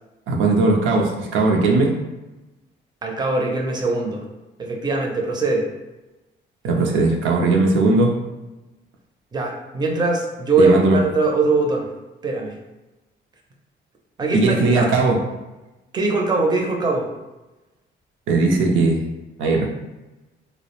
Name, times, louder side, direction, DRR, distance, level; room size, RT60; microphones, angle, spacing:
voice 1, 0.3-2.0 6.6-8.1 10.6-11.0 14.3-15.2 18.3-19.0 19.4-19.7, right 3 dB, 75° right, 0 dB, 0.5 m, -18 dB
voice 2, 3.0-4.2 4.6-5.7 9.3-10.8 11.0-11.9 12.2-12.5 14.2-14.9 15.9-17.1, right 3 dB, 20° right, 0 dB, 0.5 m, -21 dB
2.3 x 2.0 x 2.9 m, 1.0 s
cardioid pair, 90°, 20 cm